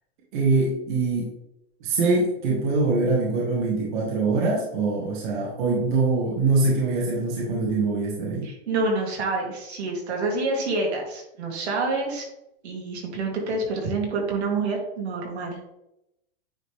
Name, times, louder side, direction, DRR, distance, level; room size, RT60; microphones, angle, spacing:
voice 1, 0.3-1.3 1.8-8.5, right 3 dB, 45° right, -4 dB, 1.9 m, -23 dB
voice 2, 8.4-12.2 12.6-15.6, right 3 dB, 75° right, -1 dB, 2.5 m, -27 dB
9.2 x 3.8 x 3.3 m, 0.85 s
supercardioid pair, 170°, 33 cm